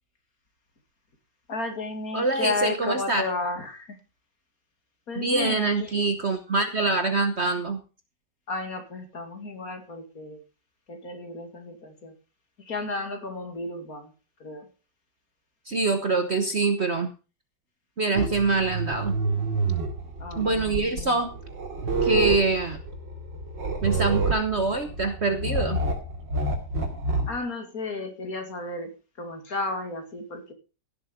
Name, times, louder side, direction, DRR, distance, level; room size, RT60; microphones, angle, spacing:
voice 1, 1.5-4.0 5.1-6.1 8.5-10.4 10.9-12.1 12.6-14.1 14.4-14.7 20.2-21.2 27.3-30.5, left 3 dB, 50° left, 5 dB, 2.7 m, -33 dB
voice 2, 2.1-3.2 5.2-7.8 15.7-17.1 18.0-19.2 20.4-21.3 22.0-22.8 23.8-25.8, right 3 dB, 40° right, 8 dB, 1.1 m, -25 dB
sound 1, 18.2-27.4, right 3 dB, 75° right, 3.2 m, -28 dB
16.5 x 7.4 x 5.0 m, 0.33 s
omnidirectional pair, 2.0 m